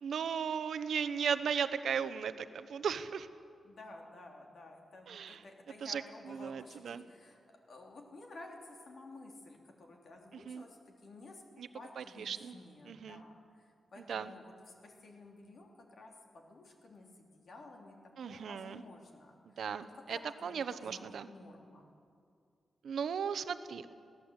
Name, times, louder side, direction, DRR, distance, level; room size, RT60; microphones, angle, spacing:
voice 1, 0.0-3.3 5.1-5.4 5.8-6.0 6.3-7.0 10.5-10.6 11.6-11.7 12.0-12.6 12.9-13.2 14.1-14.3 18.2-18.8 19.4-21.3 22.8-23.9, right 7 dB, 70° right, 11 dB, 0.9 m, -36 dB
voice 2, 3.6-21.9, left 2 dB, 50° left, 1 dB, 3.0 m, -53 dB
22.0 x 17.0 x 8.1 m, 2.3 s
wide cardioid pair, 170°, 0 cm